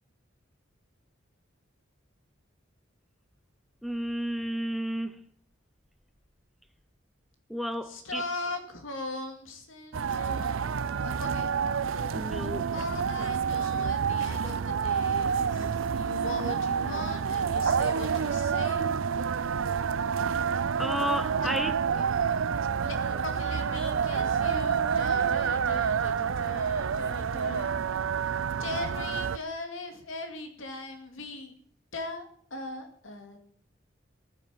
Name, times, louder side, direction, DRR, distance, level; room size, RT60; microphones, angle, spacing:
voice 1, 3.8-5.2 7.5-8.2 12.1-12.7 20.8-21.7, equal, ahead, 0.7 m, -32 dB
voice 2, 7.8-10.6 11.0-11.5 11.9-12.3 12.7-18.8 21.4-21.5 22.8-27.7 28.6-31.5 31.9-33.4, left 2 dB, 85° left, 2.4 m, -39 dB
sound 1, 9.9-29.4, right 6 dB, 85° right, 0.5 m, -28 dB
15.5 x 9.8 x 7.3 m
head